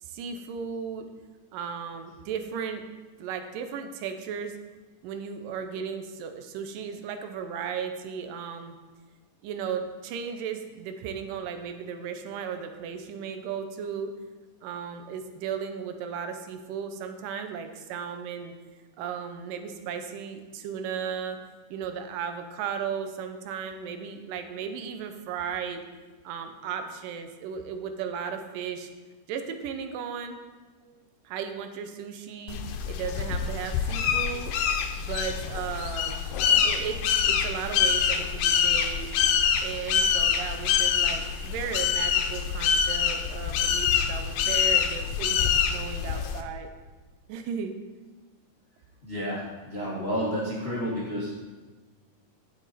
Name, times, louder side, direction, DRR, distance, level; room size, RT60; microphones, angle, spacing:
voice 1, 0.0-1.1 1.5-2.8 3.2-4.5 5.0-8.8 9.4-14.1 14.6-18.6 19.0-21.4 21.7-25.8 26.2-28.9 29.3-30.4 31.3-32.6 32.9-34.5 35.0-36.2 36.6-39.1 39.6-46.7 47.3-47.7, right 7 dB, 80° right, 7 dB, 2.4 m, -35 dB
sound 1, 32.5-46.4, left 7 dB, 85° left, 2.3 m, -25 dB
voice 2, 49.0-51.4, equal, 40° left, -6 dB, 0.8 m, -31 dB
10.5 x 7.3 x 4.1 m, 1.3 s
omnidirectional pair, 3.9 m